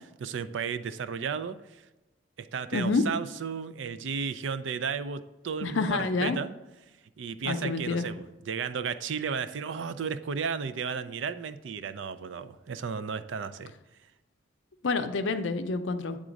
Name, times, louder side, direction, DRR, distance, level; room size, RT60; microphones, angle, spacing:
voice 1, 0.2-1.8 2.4-6.5 7.2-13.7, right 6 dB, 70° right, 12 dB, 0.4 m, -34 dB
voice 2, 2.7-3.0 5.6-6.4 7.4-8.0 14.8-16.2, left 3 dB, 70° left, 8 dB, 0.6 m, -28 dB
8.9 x 3.7 x 5.1 m, 1.0 s
head